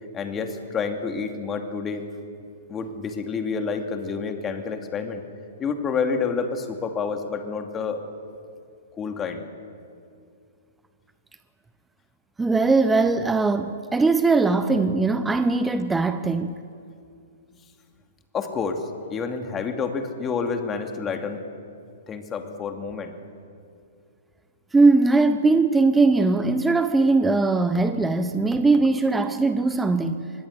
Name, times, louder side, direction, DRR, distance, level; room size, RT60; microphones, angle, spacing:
voice 1, 0.1-2.0 2.7-5.2 5.6-8.1 8.9-9.4 18.3-21.4 22.1-23.1, left 5 dB, 20° left, 2.6 m, -29 dB
voice 2, 12.4-16.5 24.7-30.3, right 3 dB, 10° right, 1.0 m, -20 dB
24.5 x 21.0 x 8.2 m
hypercardioid pair, 115°, 0 cm